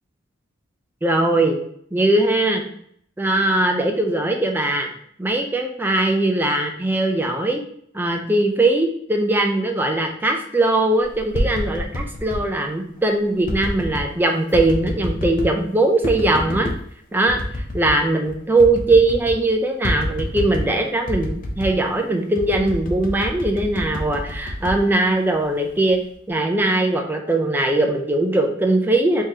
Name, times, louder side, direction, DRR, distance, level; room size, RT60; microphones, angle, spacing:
voice 1, 1.0-1.6 1.9-2.6 3.2-4.9 5.2-7.6 7.9-16.7 17.1-17.4 17.7-26.0 26.3-29.2, right 2 dB, 10° right, 3 dB, 0.4 m, -20 dB
sound 1, 11.1-12.5 13.5-14.1 14.5-15.6 16.0-16.8 17.3-18.0 18.3-18.4 18.6-19.4 19.8-20.8 21.1-21.8 22.4-25.5 25.9-26.3, left 1 dB, 45° left, 0.5 m, -28 dB
3.7 x 3.1 x 2.7 m, 0.65 s
head